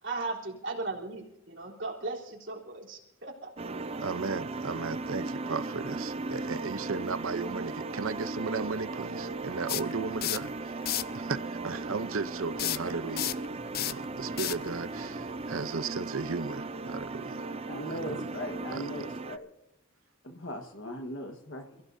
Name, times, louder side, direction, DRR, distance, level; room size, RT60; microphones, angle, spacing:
voice 1, 0.0-3.5, right 3 dB, 55° right, 3.7 m, -37 dB
sound 1, 3.6-19.4, right 3 dB, 30° right, 0.5 m, -37 dB
voice 2, 4.0-10.8 11.1-17.5 18.1-18.3 18.7-18.8, right 4 dB, 75° right, 0.8 m, -35 dB
sound 2, 9.7-10.5 10.8-11.2 12.6-15.6, left 14 dB, 45° left, 0.5 m, -33 dB
voice 3, 17.7-19.5 20.2-21.7, equal, 60° left, 1.5 m, -38 dB
29.5 x 15.5 x 2.7 m
head